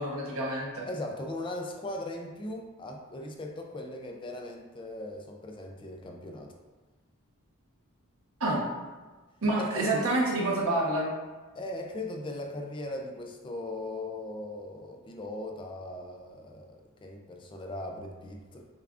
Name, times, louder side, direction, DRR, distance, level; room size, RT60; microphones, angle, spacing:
voice 1, 0.0-0.8 8.4-8.6 9.4-11.1, right 2 dB, 85° right, -3 dB, 1.0 m, -28 dB
voice 2, 0.9-6.6 9.6-10.1 11.6-18.7, left 1 dB, 25° left, 2 dB, 0.3 m, -39 dB
6.5 x 2.3 x 2.4 m, 1.3 s
head